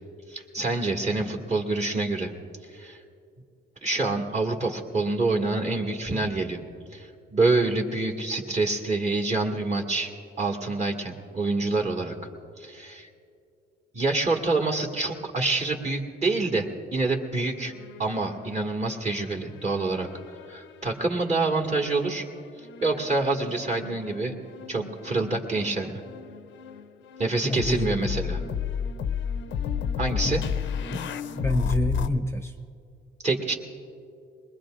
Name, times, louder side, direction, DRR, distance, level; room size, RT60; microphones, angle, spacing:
voice 1, 0.3-2.3 2.7-3.0 3.8-6.6 6.9-10.1 10.4-12.1 12.6-13.1 13.9-17.7 18.0-20.1 20.5-22.3 22.8-24.3 24.7-26.0 27.2-28.4 30.0-30.4 33.2-33.5, right 3 dB, 35° right, 1 dB, 1.9 m, -26 dB
sound 1, 17.6-19.2 19.5-20.9 21.6-32.1, left 7 dB, 75° left, 0.6 m, -33 dB
voice 2, 27.4-28.0 30.2-30.4 30.8-31.1 31.4-32.5, left 1 dB, 15° left, 4 dB, 0.7 m, -28 dB
22.5 x 21.0 x 2.5 m, 2.5 s
cardioid pair, 90°, 20 cm